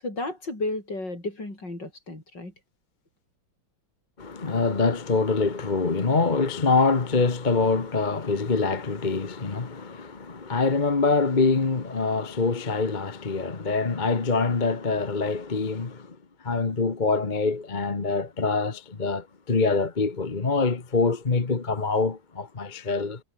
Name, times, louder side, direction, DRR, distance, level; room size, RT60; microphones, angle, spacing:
voice 1, 0.0-2.5, left 2 dB, 55° left, 8.8 m, -33 dB
voice 2, 4.2-16.1 16.4-23.2, left 4 dB, 25° left, 1.3 m, -25 dB
omnidirectional pair, 2.3 m